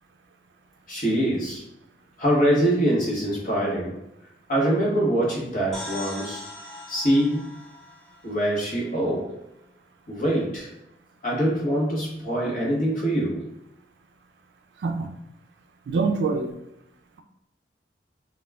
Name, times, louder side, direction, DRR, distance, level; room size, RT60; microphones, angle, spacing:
voice 1, 0.9-1.6 2.2-4.0 4.5-6.4 6.9-7.5 8.2-9.3 10.1-10.7 11.2-13.5, right 1 dB, 50° left, -5 dB, 0.9 m, -24 dB
sound 1, 5.7-9.4, left 1 dB, ahead, 0.5 m, -41 dB
voice 2, 15.9-16.6, right 4 dB, 70° right, 5 dB, 0.3 m, -24 dB
2.2 x 2.2 x 3.2 m, 0.84 s
head